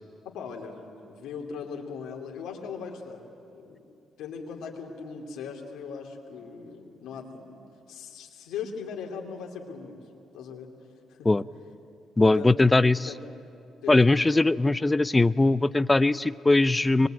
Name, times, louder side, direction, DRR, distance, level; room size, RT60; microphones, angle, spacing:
voice 1, 0.2-10.0 10.3-10.7 11.1-11.3 12.2-12.7 13.1-13.2 13.8-14.4, left 6 dB, 80° left, 1 dB, 2.8 m, -39 dB
voice 2, 12.2-13.0 13.9-17.1, left 2 dB, 20° left, 16 dB, 0.6 m, -20 dB
24.5 x 22.0 x 9.1 m, 2.6 s
supercardioid pair, 60°, 0 cm